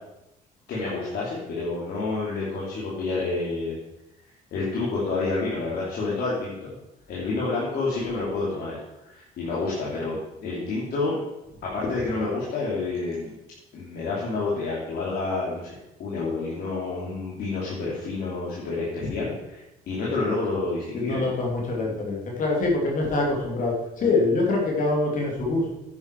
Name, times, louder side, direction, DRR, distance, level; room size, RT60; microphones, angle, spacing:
voice 1, 0.7-3.8 4.5-6.8 7.1-8.8 9.0-11.2 11.6-13.3 13.7-15.7 16.0-21.3 21.8-22.0 24.0-24.1, left 3 dB, 65° left, -6 dB, 3.3 m, -29 dB
voice 2, 20.9-25.8, left 2 dB, 50° left, -1 dB, 3.1 m, -24 dB
10.5 x 9.5 x 4.9 m, 0.94 s
cardioid pair, 110°, 17 cm